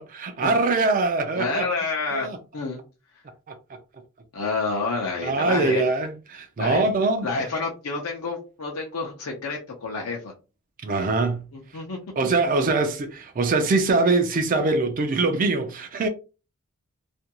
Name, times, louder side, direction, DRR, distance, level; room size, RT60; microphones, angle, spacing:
voice 1, 0.0-1.7 2.1-2.4 3.5-3.6 5.2-7.3 10.8-11.5 11.7-11.8 12.2-16.1, right 3 dB, 40° right, 0.4 m, -23 dB
voice 2, 1.4-2.3 2.5-2.8 4.3-5.9 6.6-6.8 7.2-10.3 11.5-12.0, left 4 dB, 70° left, 0.5 m, -29 dB
2.5 x 2.2 x 2.8 m
head